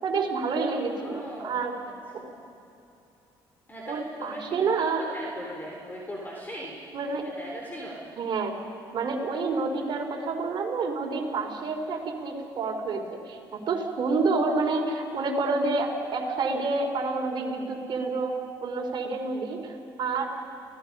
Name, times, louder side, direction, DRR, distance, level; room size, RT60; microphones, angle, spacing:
voice 1, 0.0-1.8 2.1-2.2 3.9-5.0 6.9-7.2 8.2-8.6 8.9-20.3, right 3 dB, 55° right, 2 dB, 3.9 m, -28 dB
voice 2, 1.0-1.6 2.2-2.4 3.7-3.9 4.2-4.8 5.1-6.8 7.2-8.0, equal, 20° left, -2 dB, 4.2 m, -39 dB
29.5 x 17.5 x 5.5 m, 2.7 s
cardioid pair, 90°, 9 cm